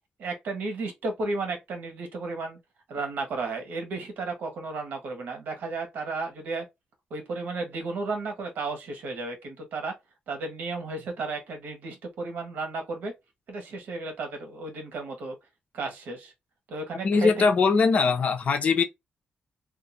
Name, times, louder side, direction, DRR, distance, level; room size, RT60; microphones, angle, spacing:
voice 1, 0.2-2.6 2.9-6.7 7.1-9.9 10.3-13.1 13.5-15.4 15.7-16.3 16.7-17.3, right 3 dB, 80° right, 1.1 m, -33 dB
voice 2, 17.0-18.8, left 4 dB, 50° left, 0.6 m, -21 dB
2.6 x 2.4 x 4.1 m
cardioid pair, 130°, 3 cm